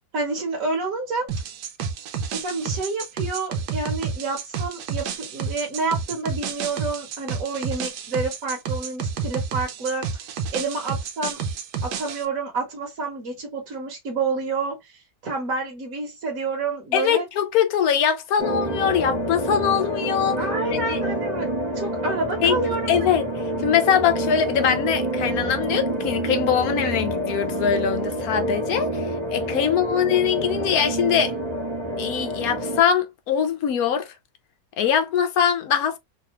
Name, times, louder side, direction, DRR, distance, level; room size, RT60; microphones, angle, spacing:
voice 1, 0.1-1.3 2.3-11.4 11.8-17.3 20.4-22.9 29.4-29.7, right 3 dB, 55° right, 1.3 m, -29 dB
sound 1, 1.3-12.2, right 6 dB, 85° right, 1.4 m, -30 dB
voice 2, 16.9-20.4 20.7-21.0 22.4-22.6 22.9-23.3 23.6-31.3 32.0-34.1 34.8-36.0, left 8 dB, 65° left, 1.0 m, -22 dB
sound 2, 18.4-32.8, right 1 dB, 30° right, 0.5 m, -27 dB
3.3 x 2.3 x 3.0 m
omnidirectional pair, 1.9 m